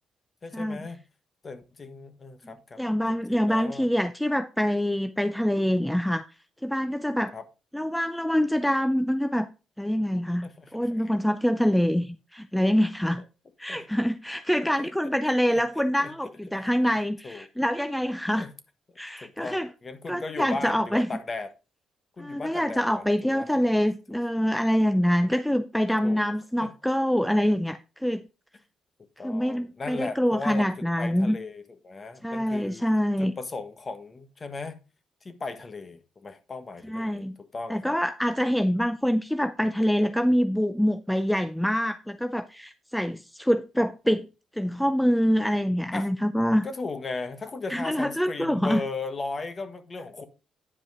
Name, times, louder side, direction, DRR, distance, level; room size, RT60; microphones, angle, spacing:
voice 1, 0.4-1.0 1.4-2.8 3.1-3.9 7.3-7.4 10.4-11.1 13.7-13.8 14.8-14.9 15.5-15.6 16.0-16.1 16.5-17.0 17.2-17.5 18.3-18.5 19.2-21.5 22.2-23.5 24.1-24.2 25.3-25.4 26.0-26.3 26.6-26.7 29.2-32.9 33.2-34.8 35.2-38.0 45.9-46.1 46.6-50.2, left 3 dB, 35° left, 1.4 m, -37 dB
voice 2, 2.8-6.3 6.6-7.3 7.7-9.5 9.8-13.2 13.6-18.5 19.0-19.7 20.1-21.1 22.2-28.2 29.2-31.4 32.2-33.3 36.9-37.4 37.7-44.3 44.6-46.7 47.7-48.8, equal, 5° left, 0.5 m, -25 dB
9.9 x 5.1 x 4.8 m
cardioid pair, 90°, 0 cm